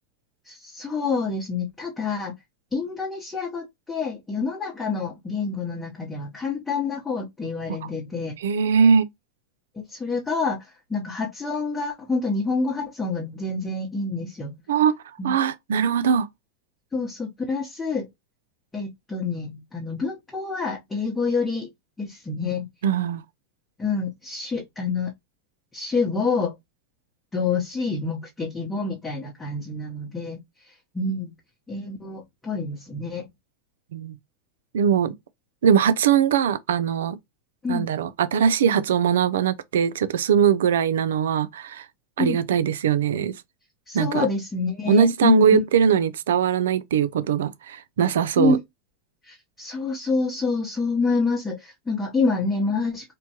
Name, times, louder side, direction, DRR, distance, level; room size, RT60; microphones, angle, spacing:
voice 1, 0.5-2.3 2.7-8.3 9.9-10.6 10.9-14.5 15.2-15.3 16.9-18.1 18.7-21.7 22.0-22.7 23.8-25.1 25.7-26.5 27.3-30.4 30.9-31.3 31.7-33.2 37.6-37.9 42.2-42.4 43.9-45.6 48.4-48.6 49.2-53.1, left 4 dB, 10° left, 0.9 m, -27 dB
voice 2, 8.4-9.1 14.7-14.9 15.2-16.3 22.8-23.2 33.9-34.1 34.7-35.1 35.6-37.2 37.7-41.9 42.2-43.3 43.9-44.3 44.9-48.6, right 7 dB, 80° right, 0.3 m, -21 dB
2.9 x 2.2 x 2.8 m
hypercardioid pair, 105°, 0 cm